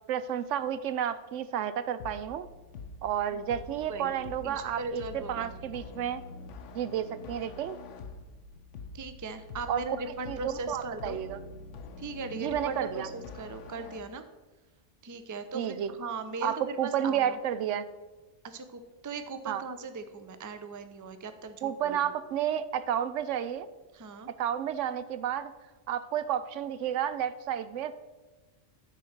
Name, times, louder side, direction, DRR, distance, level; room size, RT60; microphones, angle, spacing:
voice 1, 0.1-2.5 3.0-6.2 6.7-7.8 9.7-9.8 10.3-11.4 12.3-13.1 15.5-15.9 16.4-17.9 19.5-19.6 21.6-23.7 24.4-25.5 25.9-28.0, right 9 dB, 90° right, 14 dB, 0.9 m, -31 dB
sound 1, 2.0-14.0, left 3 dB, 80° left, 1.0 m, -46 dB
voice 2, 4.4-5.5 8.9-11.2 12.0-14.2 15.0-17.4 18.4-22.1 23.9-24.3, right 3 dB, 25° right, 9 dB, 0.4 m, -39 dB
10.5 x 4.2 x 6.5 m, 1.2 s
omnidirectional pair, 1.2 m